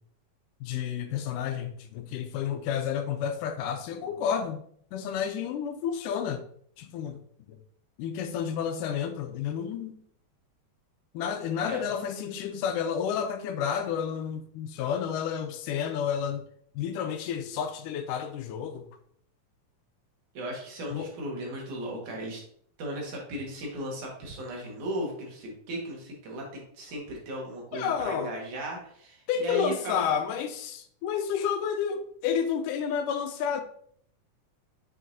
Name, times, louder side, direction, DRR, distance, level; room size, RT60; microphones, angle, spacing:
voice 1, 0.6-4.6 4.9-6.4 6.8-7.2 7.5-7.6 8.0-9.9 11.1-16.4 16.8-18.8 20.9-21.1 27.7-28.3 29.3-33.6, left 8 dB, 85° left, 8 dB, 2.2 m, -30 dB
voice 2, 20.3-22.4 22.8-30.1, equal, 70° right, -1 dB, 3.1 m, -36 dB
6.7 x 6.1 x 2.7 m, 0.63 s
omnidirectional pair, 3.7 m